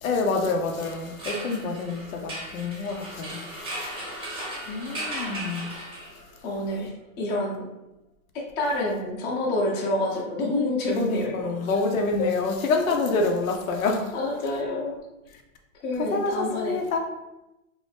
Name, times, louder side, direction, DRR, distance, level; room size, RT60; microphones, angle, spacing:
voice 1, 0.0-4.0 4.7-5.7 11.0-14.1 16.0-17.0, left 3 dB, 90° left, 0.7 m, -27 dB
sound 1, 0.7-6.4, right 1 dB, 15° right, 0.7 m, -37 dB
voice 2, 6.4-6.9 7.2-7.7 8.6-11.5 12.2-12.3 14.1-15.0 15.8-16.8, left 1 dB, 25° left, 0.7 m, -27 dB
2.7 x 2.6 x 3.3 m
hypercardioid pair, 135°, 40 cm